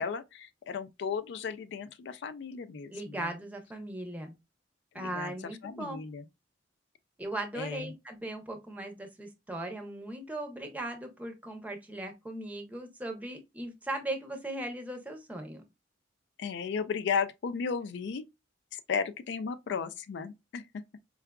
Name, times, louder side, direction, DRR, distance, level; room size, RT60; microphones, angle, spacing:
voice 1, 0.0-3.3 5.0-5.3 5.6-6.2 7.5-7.9 16.4-18.3 18.7-20.8, left 6 dB, 65° left, 0.3 m, -35 dB
voice 2, 2.9-4.3 4.9-6.0 7.2-15.6, right 1 dB, 10° right, 0.7 m, -38 dB
4.5 x 2.3 x 2.2 m
head